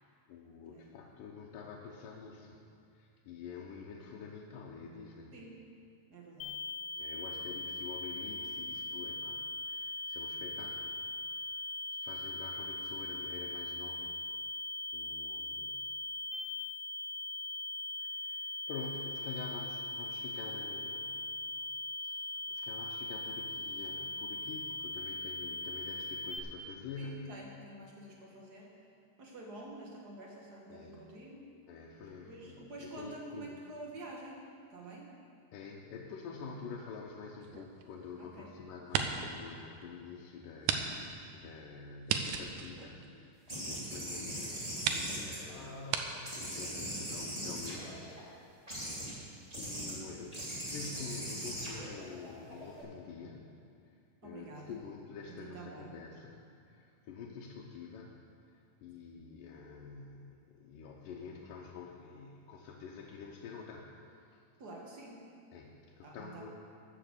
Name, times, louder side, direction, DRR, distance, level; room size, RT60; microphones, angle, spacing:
voice 1, 0.3-2.6 2.9-5.4 7.0-11.0 12.0-14.2 14.9-15.8 18.0-21.7 22.0-27.3 30.7-31.1 31.7-33.6 35.5-48.2 48.8-53.6 53.9-54.0 54.2-56.4 56.6-58.2 58.5-64.0 64.3-64.4 65.5-66.5, left 5 dB, 90° left, -2 dB, 2.5 m, -47 dB
voice 2, 5.3-5.6 6.1-6.7 15.6-15.7 27.0-28.8 29.2-31.5 32.2-35.1 38.2-38.5 43.0-43.2 43.9-44.2 49.9-50.3 54.2-54.8 55.3-56.0 59.0-59.1 64.6-65.3 66.0-66.5, right 2 dB, 70° right, -2 dB, 0.9 m, -49 dB
sound 1, 6.4-26.4, left 2 dB, 70° left, 1.6 m, -40 dB
sound 2, 37.4-38.4 38.8-39.4 39.8-39.9 40.6-40.8 41.1-41.2 42.1-43.6 44.3-44.4 44.8-45.1 45.9-46.0, right 8 dB, 90° right, 2.3 m, -34 dB
sound 3, 43.5-45.9 46.2-48.2 48.7-49.1 49.5-49.9 50.3-52.8, equal, 10° right, 2.8 m, -40 dB
13.5 x 6.9 x 6.9 m, 2.4 s
omnidirectional pair, 3.7 m